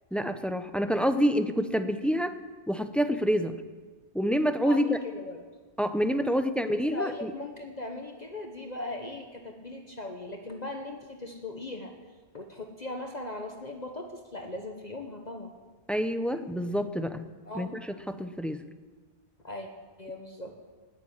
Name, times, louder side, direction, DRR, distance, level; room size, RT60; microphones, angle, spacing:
voice 1, 0.1-2.4 2.7-3.6 4.1-5.0 5.8-7.3 15.9-17.3 17.5-18.6, equal, ahead, 9 dB, 0.4 m, -27 dB
voice 2, 4.6-5.4 6.7-11.9 12.3-15.5 17.5-17.7 19.4-19.7 20.0-20.5, left 2 dB, 40° left, 3 dB, 1.3 m, -39 dB
17.0 x 7.4 x 9.6 m, 1.4 s
omnidirectional pair, 1.1 m